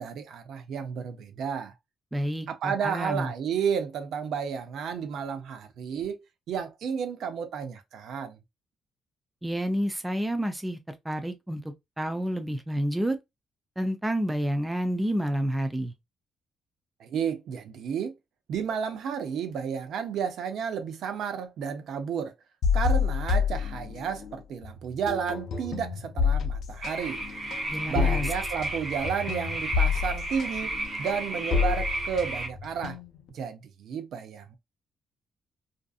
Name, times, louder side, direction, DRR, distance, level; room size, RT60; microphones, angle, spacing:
voice 1, 0.0-1.7 2.5-6.2 6.5-8.4 17.0-18.1 18.5-22.3 22.7-27.2 27.9-30.7 31.0-33.0 33.3-34.6, right 7 dB, 70° right, 0.5 m, -32 dB
voice 2, 2.1-3.3 9.4-10.8 11.0-11.6 12.0-13.2 13.8-15.9 27.7-28.2, equal, 10° right, 0.3 m, -29 dB
sound 1, 22.6-24.3 24.6-33.3, left 6 dB, 60° left, 0.5 m, -28 dB
sound 2, 26.8-32.5, right 2 dB, 35° right, 0.8 m, -33 dB
2.5 x 2.5 x 2.3 m
cardioid pair, 160°, 0 cm